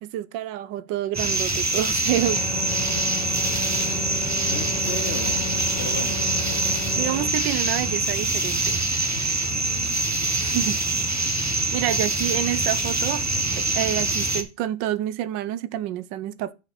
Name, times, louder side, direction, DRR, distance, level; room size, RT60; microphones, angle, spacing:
voice 1, 0.0-2.4 7.0-8.9 10.4-10.8 11.7-13.2 13.6-16.5, right 13 dB, 85° right, 1.3 m, -28 dB
sound 1, 1.1-14.4, right 2 dB, 20° right, 0.4 m, -24 dB
sound 2, 2.1-7.3, left 4 dB, 80° left, 2.7 m, -34 dB
voice 2, 4.4-6.2 9.1-9.9, left 3 dB, 40° left, 1.4 m, -36 dB
7.3 x 6.5 x 4.1 m
omnidirectional pair, 1.9 m